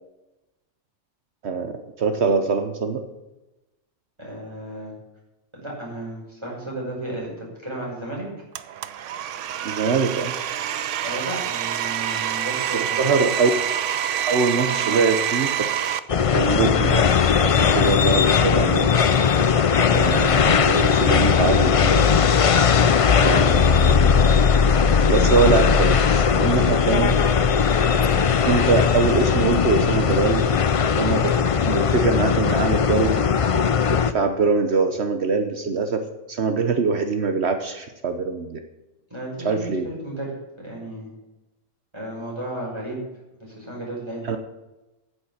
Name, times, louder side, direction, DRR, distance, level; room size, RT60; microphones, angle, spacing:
voice 1, 1.4-3.1 9.6-10.4 12.7-13.6 14.3-15.7 16.3-18.9 19.9-22.1 23.2-24.2 25.1-27.2 28.5-30.4 31.0-31.4 31.6-33.2 33.9-38.6 39.4-39.9 44.2-44.4, right 4 dB, 65° right, 7 dB, 1.2 m, -23 dB
voice 2, 4.2-4.9 5.5-8.3 11.0-13.3 14.5-15.1 39.1-41.1 41.9-43.0 43.4-44.4, right 1 dB, 20° right, -4 dB, 5.6 m, -34 dB
Domestic sounds home sounds, 8.5-16.0, right 10 dB, 85° right, 1.0 m, -26 dB
sound 1, 16.1-34.1, left 6 dB, 50° left, 0.4 m, -18 dB
9.9 x 7.8 x 8.6 m, 1.0 s
omnidirectional pair, 1.2 m